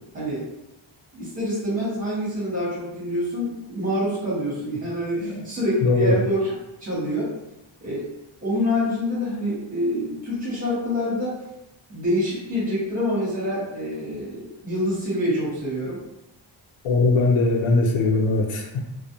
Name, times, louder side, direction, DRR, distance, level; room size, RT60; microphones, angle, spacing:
voice 1, 1.1-6.4 6.8-7.3 7.8-8.1 8.4-11.4 11.9-16.0, equal, 15° right, -7 dB, 1.1 m, -26 dB
voice 2, 5.8-6.2 16.8-18.9, left 3 dB, 85° left, 0 dB, 0.6 m, -20 dB
2.4 x 2.1 x 2.8 m, 0.88 s
wide cardioid pair, 145°, 49 cm